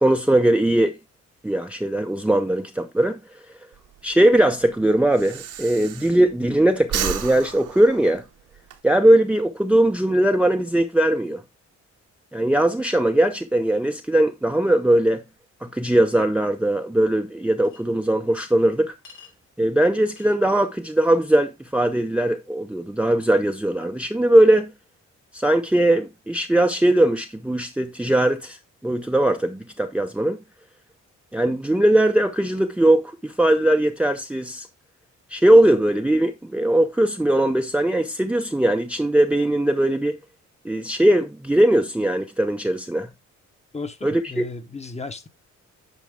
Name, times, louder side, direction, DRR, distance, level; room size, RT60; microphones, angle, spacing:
voice 1, 0.0-0.9 1.4-3.2 4.0-8.2 8.8-11.4 12.3-15.2 15.6-18.9 19.6-24.7 25.3-28.6 28.8-30.4 31.3-34.7 35.3-40.2 40.6-43.1 44.0-44.4, right 1 dB, 5° right, 0.6 m, -20 dB
Breathing, 3.7-6.5 6.8-8.8, right 9 dB, 85° right, 1.4 m, -32 dB
Chink clink, 17.6-17.8 19.0-19.3 20.2-20.4, left 5 dB, 85° left, 2.8 m, -47 dB
voice 2, 43.7-45.3, left 3 dB, 20° left, 1.1 m, -34 dB
9.4 x 4.5 x 3.6 m
cardioid pair, 90°, 30 cm